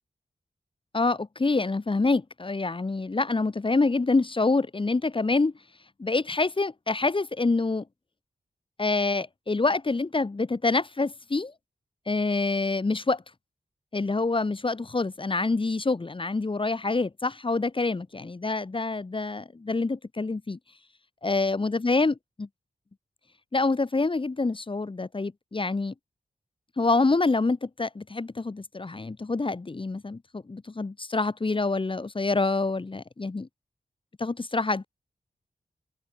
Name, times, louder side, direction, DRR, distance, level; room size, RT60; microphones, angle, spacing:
voice 1, 0.9-5.5 6.0-7.8 8.8-11.5 12.1-13.2 13.9-20.6 21.2-22.5 23.5-25.9 26.8-33.5 34.2-34.9, left 3 dB, 35° left, 1.5 m, -26 dB
wide cardioid pair, 95°, 16 cm